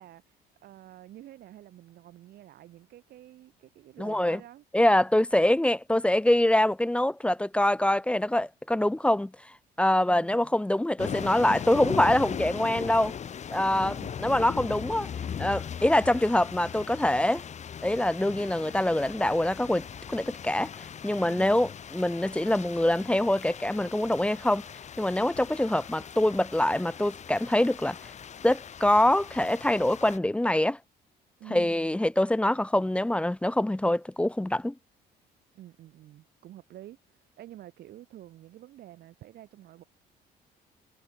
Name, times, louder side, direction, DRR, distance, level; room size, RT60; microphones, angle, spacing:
voice 1, 0.0-4.6 10.1-10.5 13.7-14.4 21.2-21.5 31.4-31.8 35.5-39.8, right 13 dB, 70° right, 6.2 m, -49 dB
voice 2, 4.0-4.4 4.7-9.3 9.8-13.1 13.5-15.1 15.4-17.4 17.8-20.7 21.0-24.7 25.0-28.0 28.4-30.8 31.5-34.7, left 1 dB, 5° left, 1.1 m, -24 dB
sound 1, 11.0-30.2, left 8 dB, 45° left, 3.3 m, -39 dB
cardioid pair, 110°, 17 cm